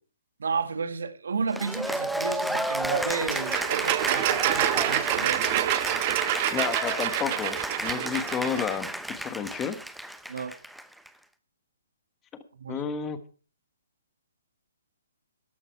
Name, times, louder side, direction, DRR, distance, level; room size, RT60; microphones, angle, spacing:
voice 1, 0.4-5.7 10.3-10.6 12.5-12.8, right 5 dB, 75° right, 1.7 m, -32 dB
Cheering / Applause, 1.5-11.1, right 1 dB, ahead, 0.7 m, -32 dB
sound 1, 3.1-8.8, right 13 dB, 35° right, 1.0 m, -27 dB
voice 2, 6.5-8.9 9.2-9.8 12.7-13.2, left 7 dB, 15° left, 1.3 m, -31 dB
13.5 x 11.0 x 4.6 m
hypercardioid pair, 150°, 0 cm